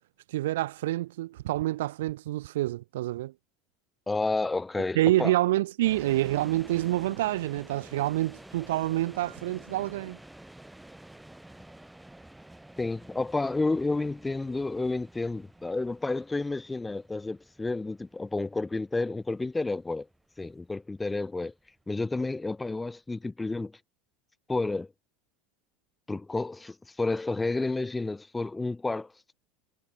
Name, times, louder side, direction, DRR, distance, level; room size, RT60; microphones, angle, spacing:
voice 1, 0.3-3.3 4.9-10.2, right 16 dB, 80° right, 0.4 m, -27 dB
voice 2, 4.1-5.3 12.8-20.1 20.4-21.5 21.9-23.7 24.5-24.9 26.1-29.1, left 3 dB, 10° left, 0.7 m, -30 dB
sound 1, 5.8-22.8, right 1 dB, 5° right, 3.5 m, -50 dB
hypercardioid pair, 95°, 0 cm